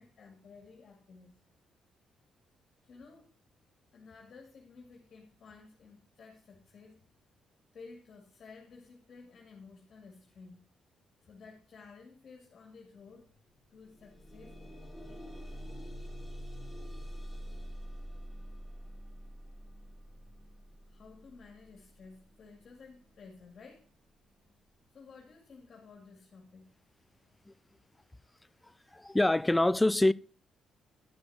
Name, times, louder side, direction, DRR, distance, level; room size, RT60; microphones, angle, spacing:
voice 1, 0.0-1.4 2.8-3.3 3.9-7.1 7.7-10.6 11.2-13.4 13.7-14.6 15.0-15.3 20.9-23.9 24.9-26.7, left 4 dB, 55° left, 2.2 m, -54 dB
sound 1, 13.0-13.1 13.5-24.5 25.3-25.4 25.9-26.0, equal, 5° right, 3.1 m, -46 dB
voice 2, 28.9-30.1, left 1 dB, 10° left, 0.3 m, -25 dB
11.0 x 6.4 x 4.5 m
cardioid pair, 90°, 0 cm